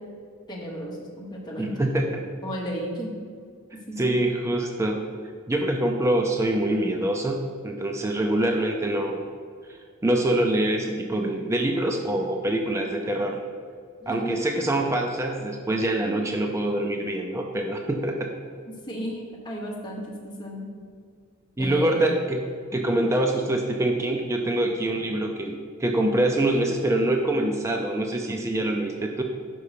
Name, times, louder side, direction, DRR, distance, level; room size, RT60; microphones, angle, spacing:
voice 1, 0.5-1.8 2.4-3.1 3.7-4.2 12.5-12.8 14.0-14.7 18.7-20.7 21.6-22.1, equal, 20° left, -3 dB, 1.2 m, -34 dB
voice 2, 1.6-2.2 4.0-5.0 5.5-9.2 10.0-13.4 14.1-18.3 21.6-22.4 22.7-29.2, right 1 dB, 15° right, 2 dB, 0.4 m, -25 dB
5.6 x 5.4 x 5.0 m, 2.1 s
head